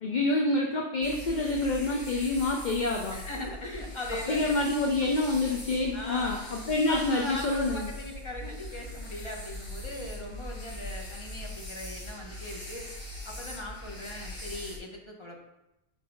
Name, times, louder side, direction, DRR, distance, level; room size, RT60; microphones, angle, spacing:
voice 1, 0.0-3.2 4.3-7.9, left 2 dB, 45° left, 1 dB, 0.8 m, -27 dB
sound 1, 1.0-14.8, left 1 dB, 85° left, 2.9 m, -41 dB
voice 2, 3.1-4.5 5.9-6.4 6.9-12.9 13.2-15.4, left 1 dB, 25° left, -1 dB, 1.3 m, -40 dB
5.6 x 5.1 x 5.4 m, 0.91 s
omnidirectional pair, 1.3 m